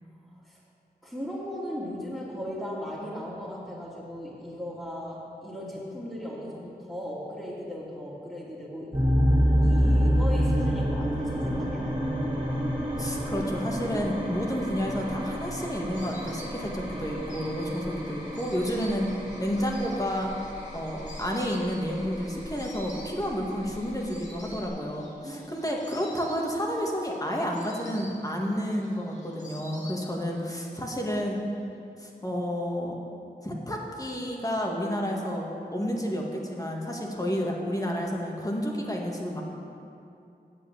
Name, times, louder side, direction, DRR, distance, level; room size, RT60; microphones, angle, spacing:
voice 1, 1.0-8.9 9.6-12.0 25.2-25.5, equal, 5° right, -10 dB, 2.6 m, -37 dB
sound 1, 8.9-24.7, equal, 30° right, 2.6 m, -28 dB
voice 2, 13.0-20.3 20.7-31.4 32.0-33.0 33.4-35.5 35.7-39.4, equal, 20° left, -1 dB, 1.9 m, -30 dB
Insect, 15.0-30.5 30.8-31.6, left 1 dB, 45° left, 2.1 m, -50 dB
9.0 x 7.9 x 7.3 m, 2.7 s
cardioid pair, 50°, 17 cm